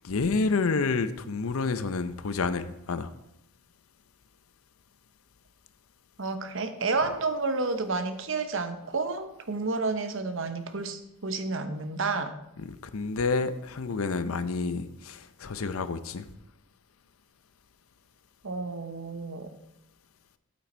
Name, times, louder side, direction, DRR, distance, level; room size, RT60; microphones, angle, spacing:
voice 1, 0.0-3.1 12.9-16.2, left 4 dB, 80° left, 0.6 m, -29 dB
voice 2, 6.2-12.3 18.4-19.5, right 3 dB, 65° right, 0.9 m, -30 dB
8.7 x 8.5 x 4.4 m
head